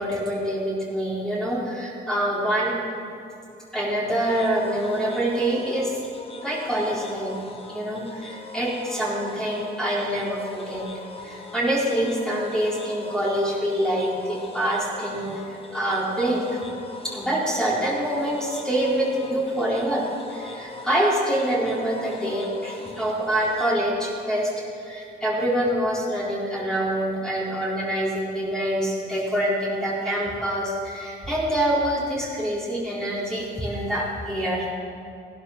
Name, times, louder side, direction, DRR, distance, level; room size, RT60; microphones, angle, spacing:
voice 1, 0.0-2.8 3.7-6.0 6.4-7.3 7.7-10.9 11.2-16.6 17.0-20.0 20.3-34.7, right 1 dB, 5° left, -6 dB, 4.1 m, -25 dB
sound 1, 4.1-23.7, left 3 dB, 30° left, 1.6 m, -41 dB
15.5 x 11.5 x 6.6 m, 2.8 s
cardioid pair, 90°, 20 cm